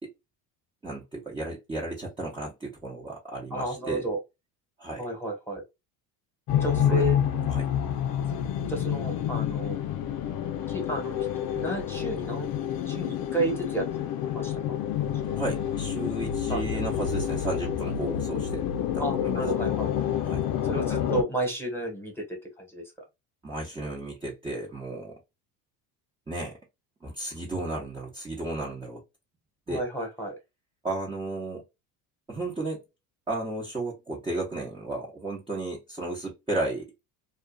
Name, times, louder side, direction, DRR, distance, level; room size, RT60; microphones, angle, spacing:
voice 1, 0.8-4.1 4.8-5.0 6.9-7.1 7.5-7.7 15.4-18.7 18.9-19.4 20.2-20.4 23.4-25.2 26.3-26.6 27.0-29.0 29.7-29.8 30.8-31.6 32.3-32.8 33.3-36.9, right 2 dB, 10° right, 0.8 m, -34 dB
voice 2, 3.5-4.2 5.0-5.6 6.6-7.2 8.7-9.8 10.7-11.3 11.5-12.5 12.9-13.8 14.3-14.5 15.2-15.4 16.5-16.8 19.0-19.9 20.7-22.8 29.7-30.4, right 2 dB, 5° left, 1.2 m, -32 dB
sound 1, 6.5-21.2, left 9 dB, 50° left, 0.6 m, -28 dB
2.4 x 2.4 x 2.3 m
supercardioid pair, 105°, 48 cm